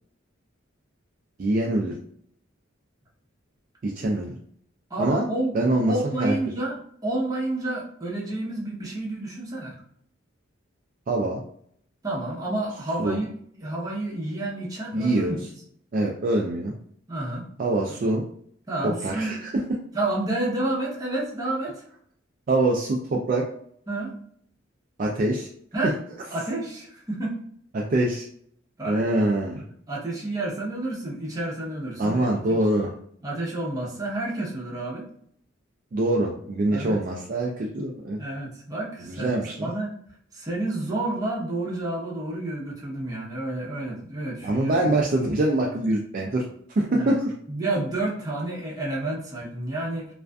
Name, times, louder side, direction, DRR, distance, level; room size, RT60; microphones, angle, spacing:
voice 1, 1.4-1.9 3.8-4.3 5.0-5.2 5.5-6.4 11.1-11.4 13.0-13.2 14.9-15.4 15.9-16.7 17.6-18.2 18.8-19.4 22.5-23.5 25.0-25.5 27.7-28.3 28.8-29.6 32.0-32.9 35.9-38.2 39.1-39.7 44.4-46.4 46.8-47.3, right 2 dB, 45° right, -2 dB, 0.3 m, -24 dB
voice 2, 4.9-5.6 5.9-6.8 7.0-9.7 12.0-13.3 13.6-15.4 17.1-17.5 18.7-19.4 19.9-21.8 23.9-24.1 25.7-26.0 26.3-27.4 28.8-29.1 29.9-32.6 33.2-35.1 36.7-37.0 38.2-40.0 40.3-44.7 46.9-47.2 47.5-50.1, right 2 dB, 20° right, -5 dB, 0.7 m, -30 dB
2.5 x 2.4 x 2.2 m, 0.62 s
head